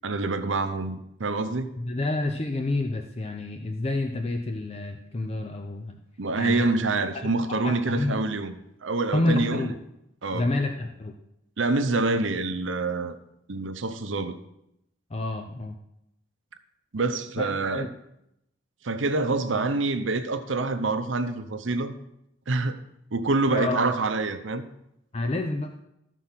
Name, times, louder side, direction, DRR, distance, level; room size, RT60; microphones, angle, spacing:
voice 1, 0.0-1.7 6.2-9.7 10.2-10.5 11.6-13.2 13.5-14.3 16.9-17.9 18.8-21.9 22.5-22.8 23.1-24.6, right 3 dB, 75° right, 0.8 m, -26 dB
voice 2, 1.8-6.0 6.4-6.7 7.2-8.2 9.1-9.8 10.3-11.1 15.1-15.8 17.4-17.9 23.5-23.8 25.1-25.7, left 2 dB, 35° left, 0.6 m, -29 dB
13.5 x 4.6 x 5.8 m
head